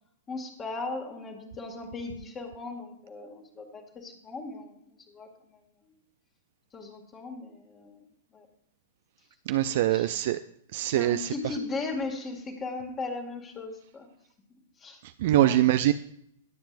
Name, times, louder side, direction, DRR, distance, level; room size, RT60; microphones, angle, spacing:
voice 1, 0.3-5.9 6.7-8.1 8.3-8.5 9.7-10.1 10.9-14.1 14.8-15.6, left 3 dB, 25° left, 2 dB, 2.2 m, -38 dB
voice 2, 9.5-10.4 10.7-11.3 15.2-15.9, right 14 dB, 55° right, 10 dB, 0.4 m, -23 dB
20.5 x 7.3 x 2.6 m, 0.70 s
figure-of-eight pair, 105°, 0 cm